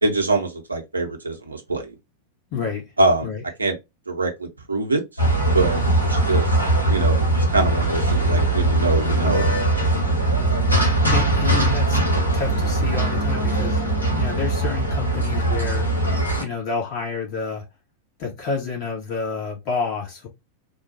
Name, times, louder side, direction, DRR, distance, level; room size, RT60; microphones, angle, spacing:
voice 1, 0.0-1.9 3.0-3.3 3.6-3.8 4.1-5.0 5.5-6.6 6.9-9.4, right 2 dB, 80° right, 0.9 m, -24 dB
voice 2, 2.5-2.8 3.2-3.4 11.1-12.0 12.3-13.8 14.2-15.9 16.4-17.6 18.2-20.3, left 5 dB, 40° left, 1.8 m, -29 dB
sound 1, 5.2-16.4, right 2 dB, 85° left, 1.1 m, -20 dB
3.6 x 2.3 x 2.7 m
figure-of-eight pair, 90°, 0 cm